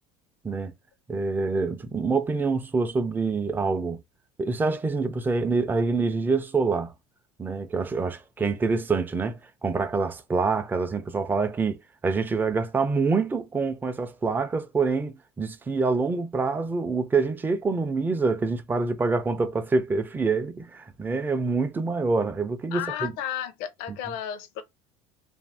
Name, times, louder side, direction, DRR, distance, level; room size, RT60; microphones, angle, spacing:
voice 1, 1.1-4.0 4.4-6.9 7.4-23.1, right 4 dB, 15° right, 0.4 m, -26 dB
voice 2, 22.7-24.6, left 10 dB, 75° left, 0.7 m, -33 dB
2.6 x 2.1 x 3.3 m
supercardioid pair, 110°, 15 cm